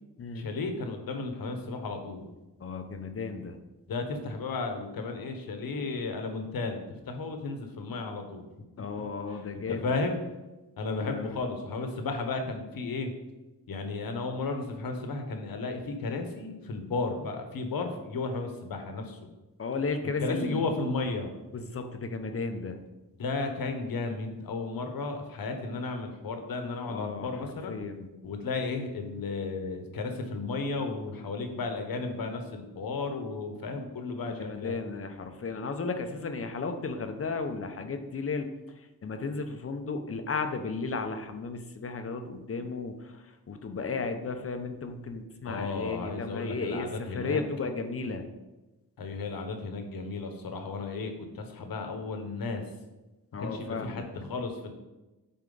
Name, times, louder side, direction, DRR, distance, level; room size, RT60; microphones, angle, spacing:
voice 1, 0.3-2.3 3.9-8.4 9.5-10.2 10.8-13.1 13.7-19.3 20.2-21.3 23.2-27.8 28.2-34.8 45.5-47.4 49.0-52.6 53.4-54.7, left 3 dB, 65° left, 5 dB, 1.1 m, -34 dB
voice 2, 2.6-3.6 8.8-9.8 11.0-11.4 19.6-20.7 21.5-22.8 26.9-28.1 34.4-38.5 38.8-48.2 53.3-54.1, left 4 dB, 35° left, 7 dB, 0.6 m, -34 dB
9.2 x 4.3 x 3.9 m, 1.1 s
wide cardioid pair, 155°, 38 cm